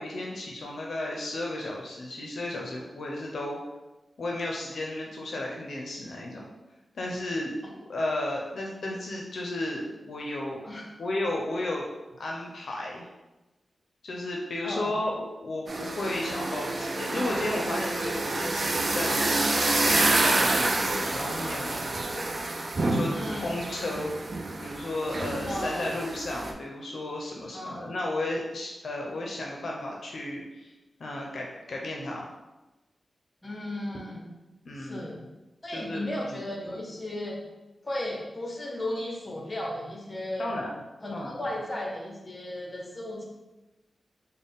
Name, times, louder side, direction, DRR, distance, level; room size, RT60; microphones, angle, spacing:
voice 1, 0.0-3.6 4.2-6.5 6.9-7.5 7.9-10.6 11.0-11.9 12.2-13.1 14.0-24.3 24.6-30.7 31.0-32.3 34.7-35.0 35.7-36.4 40.4-40.7 41.1-41.3, left 1 dB, 70° left, -1 dB, 0.5 m, -34 dB
sound 1, 15.7-26.5, right 2 dB, 45° right, 0.4 m, -28 dB
voice 2, 23.1-23.6 25.5-25.9 27.5-27.9 33.4-34.3 34.7-35.3 35.6-37.4 37.8-40.5 41.0-43.2, left 1 dB, 25° left, -1 dB, 0.8 m, -35 dB
3.9 x 2.0 x 3.5 m, 1.1 s
wide cardioid pair, 95°, 0 cm